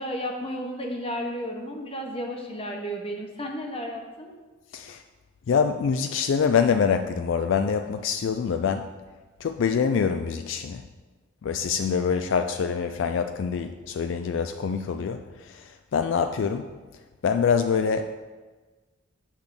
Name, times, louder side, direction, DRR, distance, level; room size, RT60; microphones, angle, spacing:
voice 1, 0.0-4.3, equal, 30° left, 1 dB, 1.0 m, -33 dB
voice 2, 5.5-8.9 9.4-10.8 11.4-16.7 17.2-18.2, left 6 dB, 65° left, 8 dB, 0.3 m, -25 dB
8.1 x 3.5 x 6.6 m, 1.3 s
head